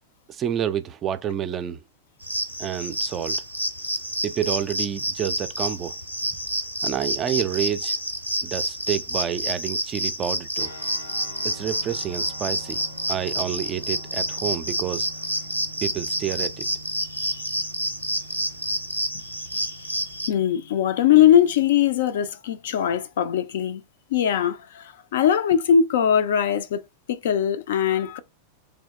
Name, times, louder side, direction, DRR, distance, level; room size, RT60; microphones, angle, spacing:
voice 1, 0.3-1.8 2.6-3.4 4.2-6.0 6.8-8.0 8.4-10.7 11.4-15.1 15.8-16.7, right 9 dB, 30° right, 0.4 m, -29 dB
sound 1, 2.2-20.3, right 1 dB, 90° right, 0.5 m, -29 dB
sound 2, 10.6-21.8, equal, 80° left, 0.8 m, -45 dB
voice 2, 17.1-17.4 19.5-19.8 20.2-23.8 24.1-26.8 27.1-28.2, left 9 dB, 60° left, 0.4 m, -21 dB
3.5 x 2.7 x 3.4 m
figure-of-eight pair, 90°, 0 cm